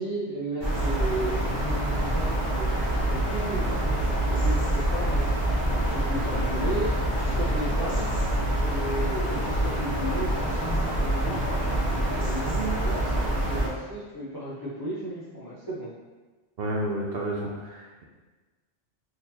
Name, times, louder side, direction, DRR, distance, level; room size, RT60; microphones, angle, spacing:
voice 1, 0.0-2.7 3.1-8.1 8.6-15.9, right 1 dB, 30° left, -8 dB, 0.4 m, -34 dB
sound 1, 0.6-13.7, right 1 dB, 25° right, 0.7 m, -26 dB
voice 2, 16.6-18.0, right 1 dB, 60° right, -3 dB, 0.6 m, -31 dB
3.8 x 2.8 x 2.7 m, 1.3 s
omnidirectional pair, 1.3 m